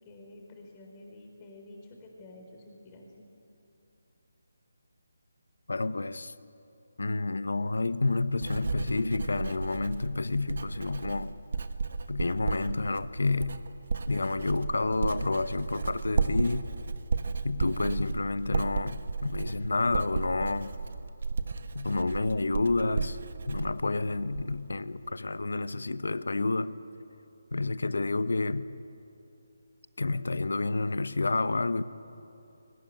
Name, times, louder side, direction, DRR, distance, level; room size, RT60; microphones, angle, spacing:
voice 1, 0.0-3.3, left 2 dB, 20° left, 1 dB, 4.3 m, -50 dB
voice 2, 5.7-6.3 7.0-11.3 12.1-13.6 14.1-16.7 17.4-20.7 21.7-23.2 23.5-26.7 27.5-28.7 30.0-31.8, left 3 dB, 80° left, 14 dB, 1.0 m, -29 dB
Writing, 7.7-24.7 25.0-25.5, right 4 dB, 55° right, 1.3 m, -34 dB
21.5 x 19.5 x 9.0 m, 2.8 s
figure-of-eight pair, 165°, 0 cm